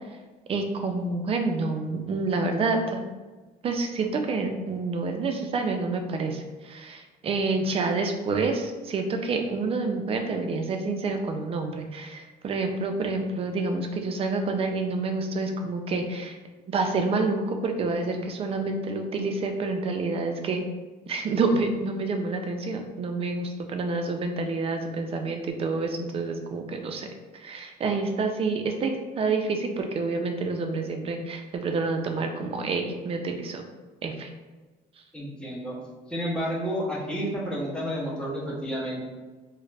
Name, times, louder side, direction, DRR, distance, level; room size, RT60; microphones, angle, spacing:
voice 1, 0.5-3.0 3.6-16.4 16.7-20.6 21.1-27.1 27.3-33.6 34.0-34.3, right 3 dB, 35° right, 4 dB, 0.4 m, -28 dB
voice 2, 35.1-35.8 36.1-39.0, equal, 5° left, -5 dB, 0.7 m, -30 dB
2.4 x 2.0 x 3.2 m, 1.3 s
cardioid pair, 110°, 17 cm